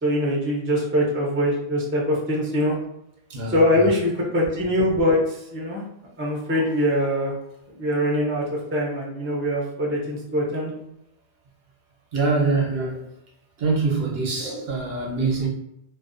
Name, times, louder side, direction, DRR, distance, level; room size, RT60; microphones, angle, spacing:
voice 1, 0.0-2.8 3.5-5.8 6.2-7.3 7.8-10.7 14.4-14.6, equal, 20° right, -3 dB, 0.4 m, -23 dB
voice 2, 3.3-3.9 12.1-13.1 13.6-15.5, right 3 dB, 70° right, -2 dB, 0.9 m, -24 dB
2.5 x 2.2 x 2.4 m, 0.82 s
omnidirectional pair, 1.1 m